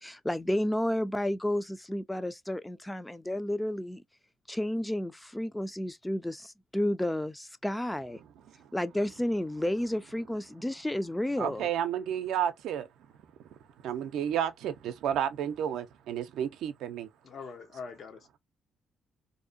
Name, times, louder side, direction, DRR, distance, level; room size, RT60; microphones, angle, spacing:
voice 1, 0.0-4.0 4.5-8.2 8.7-11.7, left 1 dB, 10° left, 0.4 m, -31 dB
voice 2, 11.4-12.9 13.8-17.1, right 9 dB, 85° right, 0.5 m, -31 dB
voice 3, 17.2-18.4, left 5 dB, 55° left, 0.8 m, -43 dB
2.7 x 2.1 x 2.5 m
cardioid pair, 90°, 0 cm